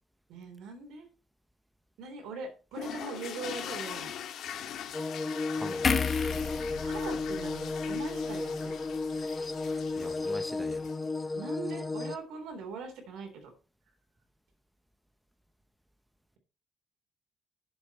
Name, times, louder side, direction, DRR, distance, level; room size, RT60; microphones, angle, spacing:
voice 1, 0.3-1.1 2.0-4.1 6.8-8.7 11.4-13.5, right 4 dB, 85° right, 3.7 m, -41 dB
sound 1, 2.7-11.2, left 9 dB, 70° left, 1.7 m, -42 dB
sound 2, 4.9-12.2, left 3 dB, 15° left, 0.7 m, -33 dB
voice 2, 5.6-6.0 10.0-10.9, equal, 5° right, 1.0 m, -42 dB
sound 3, 5.8-9.2 9.6-9.7, left 5 dB, 35° left, 1.5 m, -34 dB
10.5 x 7.4 x 4.4 m
cardioid pair, 115°, 0 cm